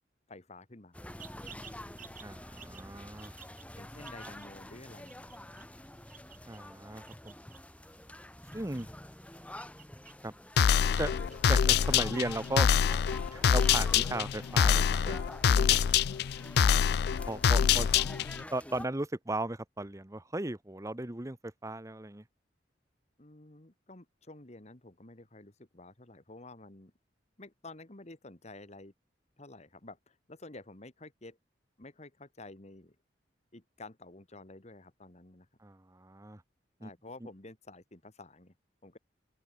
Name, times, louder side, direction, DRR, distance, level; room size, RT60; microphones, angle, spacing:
voice 1, 0.3-1.1 3.8-5.6 23.2-26.9 27.4-28.9 29.4-31.4 31.8-33.0 33.5-35.5 36.8-38.5 38.8-39.0, left 2 dB, 40° left, 2.0 m, -51 dB
sound 1, 0.9-18.9, left 1 dB, 5° left, 1.6 m, -48 dB
sound 2, 1.1-16.8, right 9 dB, 50° right, 5.1 m, -58 dB
voice 2, 2.2-3.3 6.5-7.3 8.5-8.9 10.2-10.3 11.0-11.1 11.5-13.0 13.3-15.2 15.5-15.9 17.3-17.9 18.5-22.2 35.6-36.4 36.8-36.9, right 2 dB, 15° right, 1.0 m, -36 dB
sound 3, 10.6-18.4, left 7 dB, 60° left, 0.4 m, -25 dB
open air
head